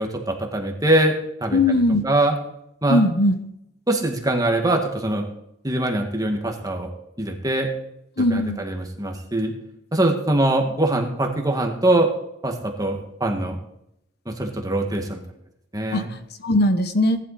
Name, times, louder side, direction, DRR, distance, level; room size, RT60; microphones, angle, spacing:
voice 1, 0.0-2.4 2.8-3.0 3.9-5.3 5.6-6.9 7.2-7.7 8.3-9.5 9.9-12.1 12.4-13.6 14.3-15.2 15.7-16.1, right 1 dB, 20° right, 3 dB, 2.0 m, -23 dB
voice 2, 1.5-2.0 2.9-3.3 8.2-8.6 15.9-16.0 16.4-17.2, left 1 dB, 55° left, 9 dB, 1.1 m, -19 dB
18.0 x 11.5 x 4.2 m, 0.78 s
head